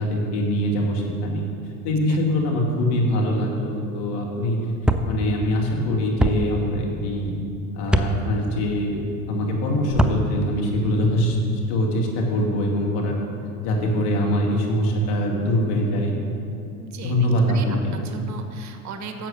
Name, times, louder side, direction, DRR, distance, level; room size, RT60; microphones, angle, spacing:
voice 1, 0.0-1.5 1.8-4.7 5.0-7.3 7.7-9.0 9.3-11.4 11.7-13.2 13.6-16.1 17.0-18.0, equal, 60° left, -1 dB, 2.5 m, -23 dB
sound 1, 4.8-5.1 6.2-6.4 7.9-8.1 9.9-10.2, right 1 dB, ahead, 0.5 m, -20 dB
voice 2, 16.8-17.2 17.5-17.6 17.9-19.3, right 5 dB, 40° right, 6 dB, 1.2 m, -37 dB
11.0 x 7.6 x 6.7 m, 2.6 s
hypercardioid pair, 80°, 44 cm